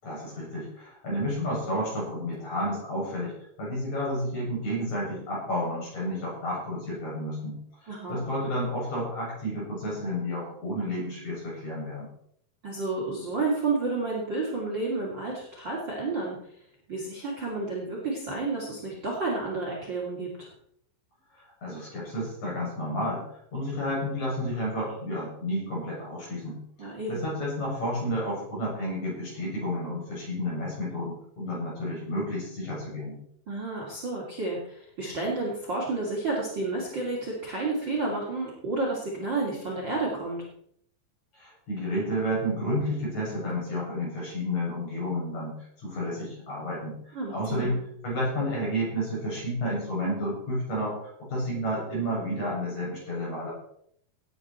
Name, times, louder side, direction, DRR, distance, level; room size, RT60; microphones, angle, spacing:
voice 1, 0.0-12.1 21.6-26.6 27.1-33.2 41.3-53.5, equal, 45° left, -5 dB, 8.6 m, -31 dB
voice 2, 7.9-8.2 12.6-16.4 16.9-20.5 26.8-27.3 33.5-40.4 47.1-47.7, right 3 dB, 30° right, -3 dB, 3.0 m, -31 dB
18.0 x 9.7 x 4.4 m, 0.69 s
omnidirectional pair, 4.6 m